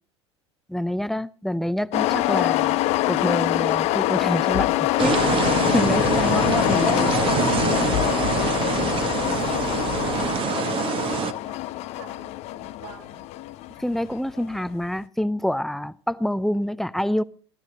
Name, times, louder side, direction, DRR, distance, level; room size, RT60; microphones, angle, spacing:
voice 1, 0.7-2.8 3.1-7.1 13.8-17.2, equal, ahead, 0.5 m, -27 dB
sound 1, 1.9-14.6, left 16 dB, 50° left, 0.5 m, -24 dB
sound 2, 5.0-10.3, left 11 dB, 70° left, 1.9 m, -32 dB
sound 3, 5.0-11.3, right 8 dB, 40° right, 1.0 m, -25 dB
voice 2, 9.3-9.9 11.2-13.2, right 5 dB, 80° right, 6.2 m, -45 dB
13.0 x 13.0 x 4.2 m
hypercardioid pair, 80°, 14 cm